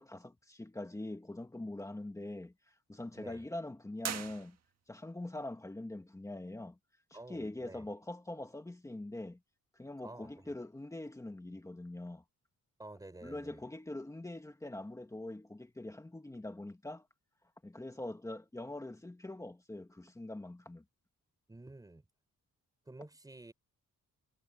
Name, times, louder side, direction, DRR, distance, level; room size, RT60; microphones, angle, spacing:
voice 1, 0.0-2.5 2.9-4.6 4.9-6.8 7.3-9.4 9.8-12.2 13.2-17.1 17.6-20.8, left 1 dB, 10° left, 1.9 m, -43 dB
sound 1, 4.0-5.0, right 8 dB, 50° right, 1.7 m, -41 dB
voice 2, 7.1-7.9 10.0-10.5 12.8-13.6 21.5-22.0 22.9-23.5, right 2 dB, 10° right, 5.0 m, -50 dB
wide cardioid pair, 180°, 32 cm